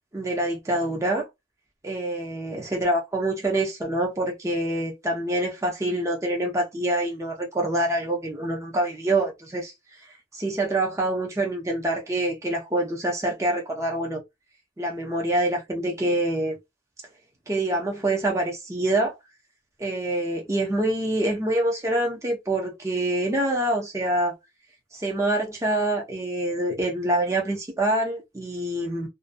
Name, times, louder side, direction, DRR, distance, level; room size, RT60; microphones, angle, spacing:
voice 1, 0.1-1.3 1.8-10.1 10.3-14.2 14.8-16.6 17.5-19.2 19.8-24.3 24.9-29.1, right 1 dB, 15° right, 0.5 m, -26 dB
2.5 x 2.2 x 2.5 m
head